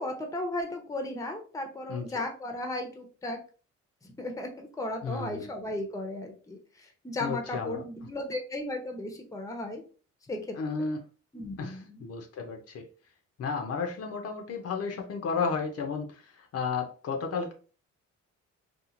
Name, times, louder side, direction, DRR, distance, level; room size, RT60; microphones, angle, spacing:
voice 1, 0.0-3.4 4.2-6.6 7.0-9.8 10.3-10.6 11.3-12.0, left 1 dB, 10° left, 3 dB, 0.7 m, -35 dB
voice 2, 1.9-2.2 5.0-5.5 7.2-7.8 10.5-11.0 11.6-12.9 13.4-17.5, left 5 dB, 55° left, 3 dB, 0.6 m, -33 dB
2.9 x 2.4 x 2.4 m, 0.37 s
cardioid pair, 90°, 30 cm